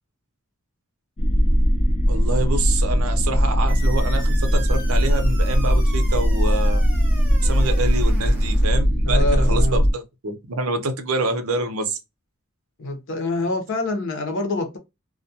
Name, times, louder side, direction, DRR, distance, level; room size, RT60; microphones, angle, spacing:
sound 1, 1.2-9.9, equal, 30° left, 0.4 m, -19 dB
voice 1, 2.1-6.8 7.4-12.0, right 2 dB, 80° right, 0.6 m, -26 dB
sound 2, 3.7-8.7, right 1 dB, 10° right, 0.6 m, -40 dB
voice 2, 9.0-9.8 12.8-14.8, left 2 dB, 60° left, 0.7 m, -25 dB
2.3 x 2.1 x 2.7 m
head